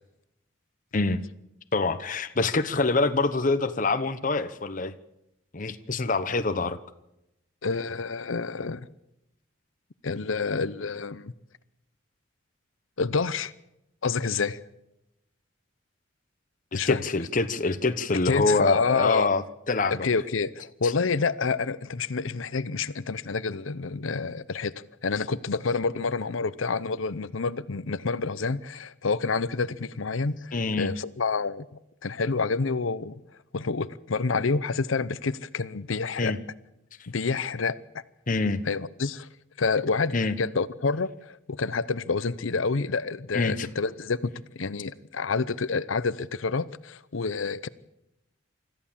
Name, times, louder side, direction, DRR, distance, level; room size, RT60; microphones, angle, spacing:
voice 1, 0.9-1.2 1.7-4.9 5.5-6.8 16.7-20.1 20.8-20.9 30.5-30.9 36.2-36.4 38.3-38.6 40.1-40.3 43.3-43.7, left 3 dB, 40° left, 0.9 m, -25 dB
voice 2, 7.6-8.9 10.0-11.3 13.0-13.5 14.0-14.6 16.7-17.0 18.1-19.3 19.9-24.7 25.0-31.7 32.0-33.2 33.5-36.4 37.1-38.0 38.7-39.3 39.6-47.7, left 4 dB, 80° left, 0.7 m, -28 dB
25.0 x 14.0 x 7.4 m
head